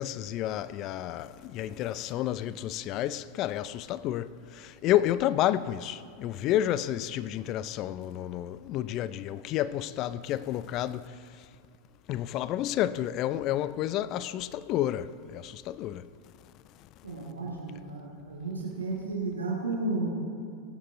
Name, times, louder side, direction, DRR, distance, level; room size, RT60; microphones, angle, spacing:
voice 1, 0.0-11.1 12.1-16.1, left 12 dB, 45° left, 0.4 m, -30 dB
voice 2, 17.0-20.1, right 2 dB, 85° right, 1.8 m, -33 dB
19.5 x 9.1 x 2.6 m
figure-of-eight pair, 90°, 0 cm